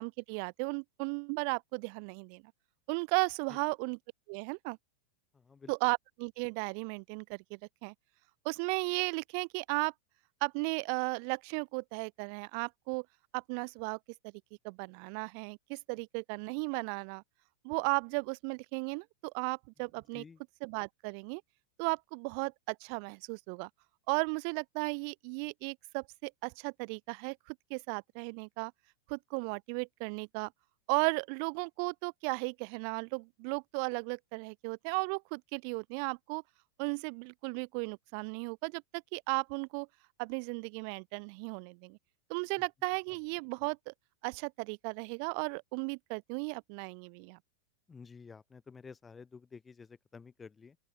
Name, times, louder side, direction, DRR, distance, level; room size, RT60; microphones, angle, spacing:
voice 1, 0.0-2.4 2.9-4.0 4.3-4.8 5.7-7.9 8.4-9.9 10.4-13.1 13.3-14.0 14.6-17.2 17.6-20.2 20.6-21.4 21.8-23.7 24.1-28.7 29.1-30.5 30.9-36.4 36.8-39.9 40.2-42.0 42.3-43.9 44.2-47.4, right 40 dB or more, 45° right, 0.4 m, -35 dB
voice 2, 5.3-5.7 20.1-20.4 47.9-50.8, left 5 dB, 15° left, 1.1 m, -51 dB
open air
figure-of-eight pair, 90°, 0 cm